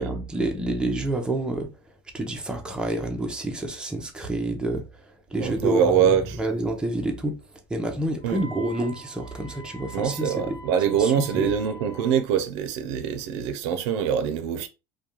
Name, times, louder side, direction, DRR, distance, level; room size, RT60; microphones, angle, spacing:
voice 1, 0.0-1.7 2.1-4.8 5.3-7.4 7.7-10.6 11.0-11.5, right 1 dB, 5° right, 0.5 m, -28 dB
voice 2, 5.4-6.4 8.2-8.4 9.9-14.7, right 8 dB, 75° right, 0.5 m, -24 dB
Wind instrument woodwind instrument, 8.2-12.3, right 1 dB, 45° left, 0.5 m, -44 dB
2.3 x 2.2 x 2.9 m
supercardioid pair, 115°, 14 cm